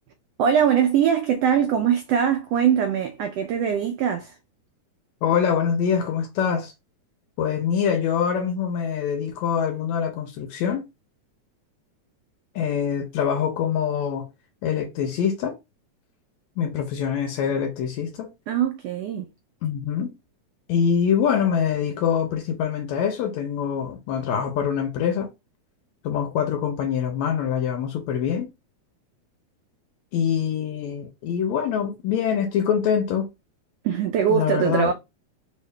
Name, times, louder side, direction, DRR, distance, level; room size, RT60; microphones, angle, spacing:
voice 1, 0.4-4.3 18.5-19.3 33.8-34.9, right 8 dB, 85° right, 1.4 m, -22 dB
voice 2, 5.2-6.7 7.4-10.9 12.6-14.3 14.6-15.6 16.6-18.3 19.6-20.1 20.7-25.3 26.0-28.5 30.1-33.3 34.3-34.9, left 7 dB, 75° left, 1.9 m, -24 dB
4.3 x 2.7 x 3.3 m
omnidirectional pair, 3.4 m